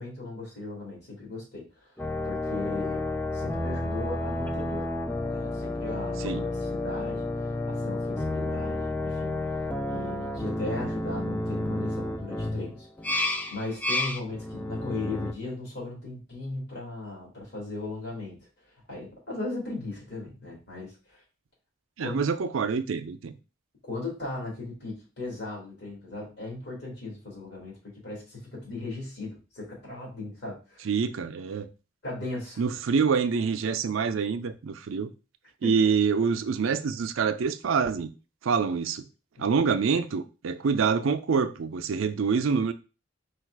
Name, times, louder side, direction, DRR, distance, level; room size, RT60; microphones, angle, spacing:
voice 1, 0.0-1.9 2.2-4.9 5.2-9.3 9.9-12.9 13.1-13.2 13.5-18.5 18.9-21.2 22.0-22.3 23.9-30.9 32.0-32.6 35.6-35.9 39.3-39.5, left 2 dB, 55° left, 2.5 m, -37 dB
sound 1, 2.0-15.3, left 1 dB, 10° left, 0.4 m, -31 dB
voice 2, 22.0-23.3 30.8-31.7 32.6-35.1 35.6-38.1 38.4-39.1 39.4-42.7, right 5 dB, 80° right, 0.5 m, -26 dB
4.6 x 2.4 x 4.6 m
head